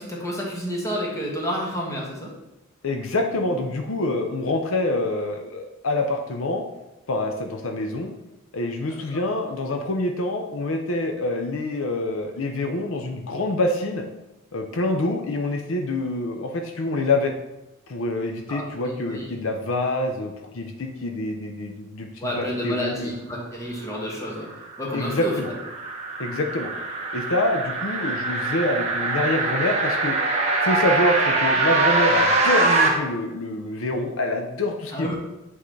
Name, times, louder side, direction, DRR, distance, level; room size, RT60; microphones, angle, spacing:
voice 1, 0.0-2.3 9.1-9.3 18.5-19.4 22.2-24.5 24.8-25.6 34.9-35.2, equal, 15° left, -3 dB, 1.3 m, -30 dB
voice 2, 2.8-6.6 7.1-8.1 8.5-14.0 14.5-17.3 17.9-23.1 24.9-25.5 26.2-26.7 27.1-30.2 30.6-35.1, left 2 dB, 75° left, 4 dB, 0.6 m, -26 dB
sound 1, 24.5-32.9, right 3 dB, 35° right, 0.9 m, -23 dB
8.3 x 3.8 x 3.2 m, 0.94 s
head